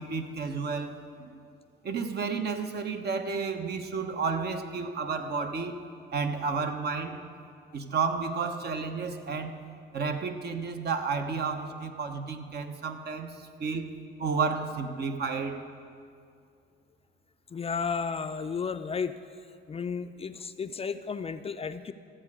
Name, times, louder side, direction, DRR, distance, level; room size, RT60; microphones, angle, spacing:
voice 1, 0.0-1.4 1.8-5.8 6.1-7.2 7.7-9.6 9.9-13.9 14.2-15.6, right 5 dB, 55° right, 7 dB, 0.9 m, -31 dB
voice 2, 17.5-19.1 19.7-21.9, left 5 dB, 30° left, 10 dB, 0.4 m, -33 dB
14.0 x 7.5 x 4.8 m, 2.3 s
cardioid pair, 90°, 20 cm